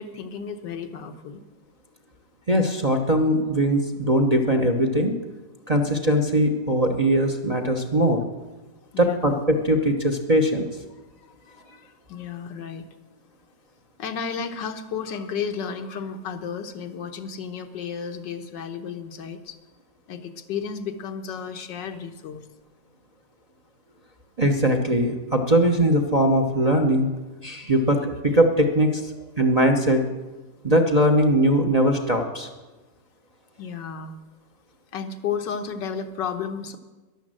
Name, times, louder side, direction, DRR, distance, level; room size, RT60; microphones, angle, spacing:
voice 1, 0.0-1.4 8.9-9.4 11.2-12.9 14.0-19.6 20.1-22.4 29.1-29.2 33.6-34.2 34.9-36.8, left 6 dB, 80° left, 6 dB, 1.7 m, -33 dB
voice 2, 2.5-5.1 5.7-8.2 9.0-10.6 24.4-27.1 27.4-29.0 29.4-30.0 30.6-32.5, right 1 dB, 30° right, 4 dB, 0.8 m, -20 dB
13.0 x 11.0 x 7.6 m, 1.2 s
omnidirectional pair, 1.9 m